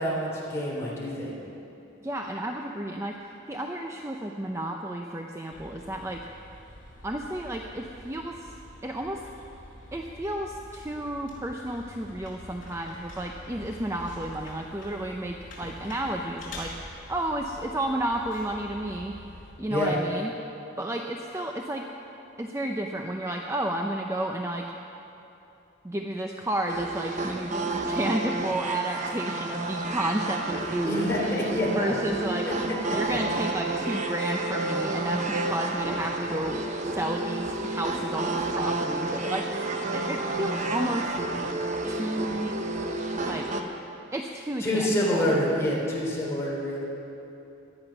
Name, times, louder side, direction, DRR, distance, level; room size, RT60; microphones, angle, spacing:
voice 1, 0.0-1.3 19.7-19.9 30.9-31.9 32.9-33.2 44.6-46.9, left 1 dB, 15° left, -5 dB, 3.5 m, -27 dB
voice 2, 2.0-6.3 7.0-8.5 8.8-9.2 9.9-19.1 19.6-20.3 20.8-21.9 22.4-24.7 25.8-31.1 31.6-32.5 32.9-36.6 36.8-41.1 41.9-42.6 43.2-43.5 44.1-45.4, right 1 dB, 15° right, 2 dB, 0.6 m, -32 dB
sound 1, 5.5-19.5, left 1 dB, 45° left, 4.5 m, -46 dB
sound 2, 26.7-43.6, right 2 dB, 40° right, 1.0 m, -30 dB
17.5 x 11.5 x 6.0 m, 2.9 s
head